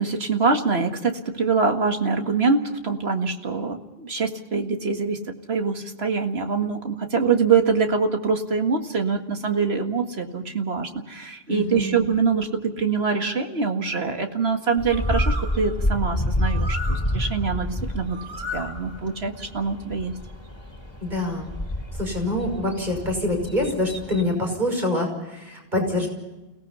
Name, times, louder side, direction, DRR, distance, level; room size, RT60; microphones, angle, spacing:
voice 1, 0.0-5.2 5.5-18.2 18.4-20.1, right 5 dB, 65° right, 5 dB, 2.1 m, -24 dB
voice 2, 11.5-12.0 21.0-21.5 22.0-26.1, left 1 dB, 40° right, 2 dB, 6.1 m, -25 dB
Bird, 14.8-24.4, left 1 dB, 25° left, 2.6 m, -29 dB
29.5 x 18.0 x 5.7 m, 1.0 s
omnidirectional pair, 1.1 m